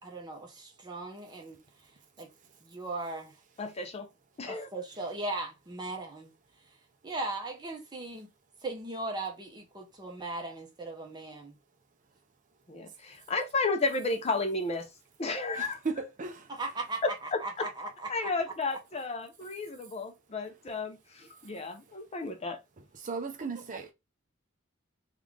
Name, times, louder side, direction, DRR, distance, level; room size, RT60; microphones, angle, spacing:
voice 1, 0.0-1.6 2.2-2.3 2.6-3.4 4.5-6.3 7.0-8.3 8.6-11.6 16.5-18.3 23.7-23.8, right 2 dB, 20° right, 0.9 m, -38 dB
voice 2, 3.6-4.1 4.4-4.7 12.7-14.9 15.2-15.8 17.0-17.4 18.1-22.6, left 3 dB, 30° left, 0.5 m, -32 dB
voice 3, 15.5-16.5 23.0-23.9, right 4 dB, 40° right, 0.5 m, -36 dB
3.7 x 2.4 x 3.2 m
head